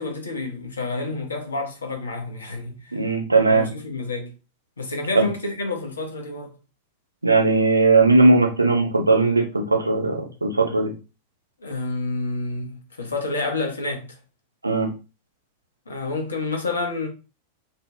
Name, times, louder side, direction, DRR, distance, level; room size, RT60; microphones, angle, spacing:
voice 1, 0.0-3.0 3.5-4.3 4.8-6.5 11.6-14.1 15.9-17.1, left 3 dB, 75° left, 0.7 m, -29 dB
voice 2, 2.9-3.6 5.2-5.3 7.2-10.9 14.6-14.9, right 3 dB, 80° right, 0.7 m, -18 dB
2.6 x 2.1 x 2.9 m
figure-of-eight pair, 90°, 0 cm